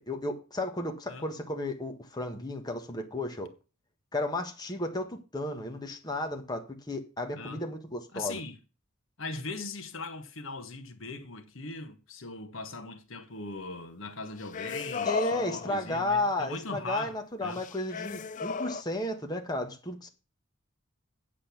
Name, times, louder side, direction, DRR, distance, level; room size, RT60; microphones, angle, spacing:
voice 1, 0.0-3.5 4.1-8.4 15.0-20.1, left 1 dB, 20° left, 1.4 m, -33 dB
voice 2, 8.1-8.6 9.2-17.6, left 3 dB, 65° left, 1.3 m, -40 dB
sound 1, 14.3-16.1 17.5-18.8, left 5 dB, 35° left, 0.4 m, -35 dB
8.6 x 7.5 x 5.9 m
head